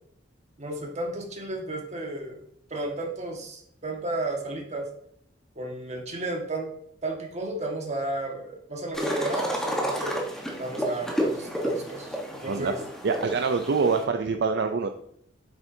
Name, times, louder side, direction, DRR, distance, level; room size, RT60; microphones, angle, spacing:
voice 1, 0.6-2.4 2.7-4.8 5.5-6.7 7.0-10.2 10.6-12.8, right 2 dB, 40° right, 1 dB, 1.7 m, -33 dB
sound 1, 8.9-14.0, equal, 5° left, 1.2 m, -31 dB
voice 2, 13.0-14.9, right 4 dB, 60° right, 6 dB, 0.5 m, -25 dB
7.8 x 7.2 x 2.7 m, 0.69 s
head